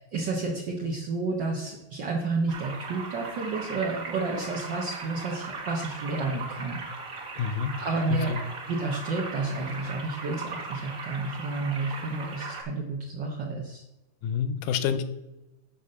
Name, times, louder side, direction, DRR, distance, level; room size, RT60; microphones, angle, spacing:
voice 1, 0.1-6.9 7.8-8.3 8.7-13.8, right 3 dB, 80° right, -2 dB, 1.0 m, -31 dB
sound 1, 2.5-12.6, right 4 dB, 45° right, 1.2 m, -38 dB
voice 2, 7.4-7.8 8.1-8.4 14.2-15.0, left 7 dB, 75° left, 10 dB, 2.0 m, -28 dB
10.0 x 4.2 x 6.7 m, 0.98 s
omnidirectional pair, 4.0 m